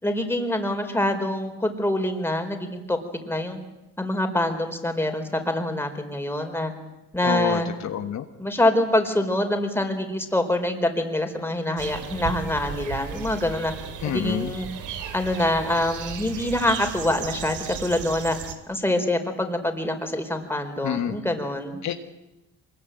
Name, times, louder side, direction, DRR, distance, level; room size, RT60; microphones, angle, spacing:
voice 1, 0.0-3.0 3.2-3.6 4.0-6.7 7.1-7.7 8.4-13.7 14.0-14.7 15.1-18.4 18.7-21.8, left 1 dB, 10° left, 5 dB, 4.5 m, -25 dB
voice 2, 7.2-8.2 14.0-14.5 20.8-21.2 21.8-21.9, left 10 dB, 65° left, 7 dB, 1.6 m, -27 dB
sound 1, 11.8-18.5, right 8 dB, 85° right, 2.5 m, -35 dB
24.5 x 21.5 x 9.2 m, 0.96 s
cardioid pair, 90°, 30 cm